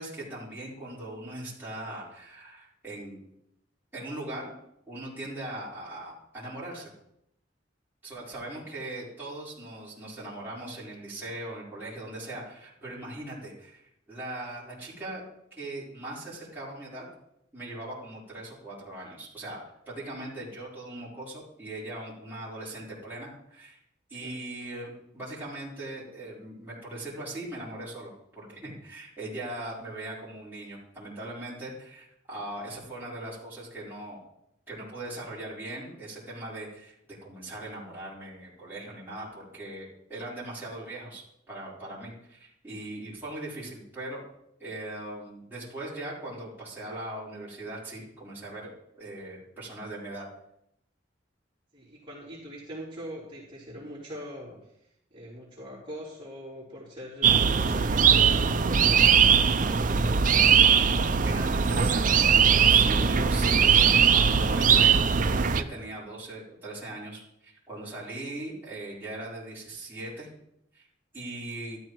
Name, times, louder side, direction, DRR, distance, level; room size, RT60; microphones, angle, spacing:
voice 1, 0.0-3.2 3.9-4.5 4.9-6.9 8.0-15.2 15.5-17.1 17.5-23.8 24.1-34.2 34.7-44.2 44.6-48.7 48.9-50.2 61.2-70.3 70.7-70.9 71.1-71.8, right 1 dB, 10° right, -9 dB, 4.3 m, -40 dB
voice 2, 51.7-60.4, equal, 25° right, -8 dB, 4.0 m, -42 dB
sound 1, 57.2-65.6, right 6 dB, 40° right, 0.5 m, -20 dB
13.0 x 13.0 x 3.1 m, 0.77 s
head